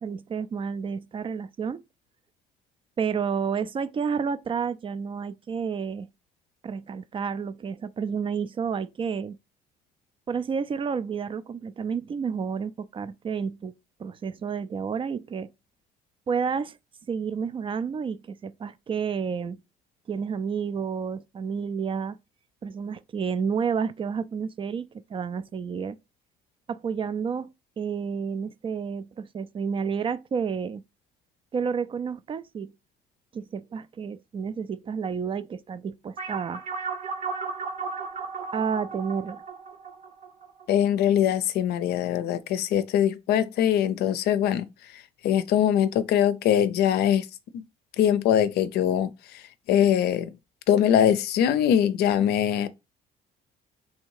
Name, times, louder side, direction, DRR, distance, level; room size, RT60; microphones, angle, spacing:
voice 1, 0.0-1.8 3.0-6.1 6.6-9.4 10.3-13.7 14.0-15.5 16.3-16.8 17.1-19.6 20.1-22.2 22.6-26.0 26.7-27.5 27.8-30.8 31.5-32.7 33.3-36.6 38.5-39.4, right 6 dB, 30° right, 0.4 m, -30 dB
sound 1, 36.2-41.0, right 4 dB, 45° right, 0.8 m, -35 dB
voice 2, 40.7-44.7 45.2-47.3 47.5-47.6 48.0-49.1 49.7-50.3 50.7-52.7, left 10 dB, 70° left, 0.5 m, -22 dB
3.2 x 2.7 x 4.5 m
cardioid pair, 110°, 17 cm